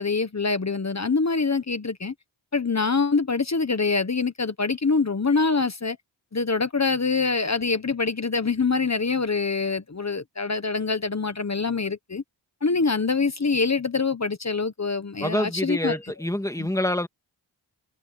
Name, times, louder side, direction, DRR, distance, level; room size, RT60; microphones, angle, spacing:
voice 1, 0.0-2.1 2.5-6.0 6.3-12.2 12.6-16.0 16.6-16.7, left 4 dB, 35° left, 1.4 m, -25 dB
voice 2, 15.2-17.1, left 1 dB, 5° left, 2.8 m, -26 dB
cardioid pair, 55°, 47 cm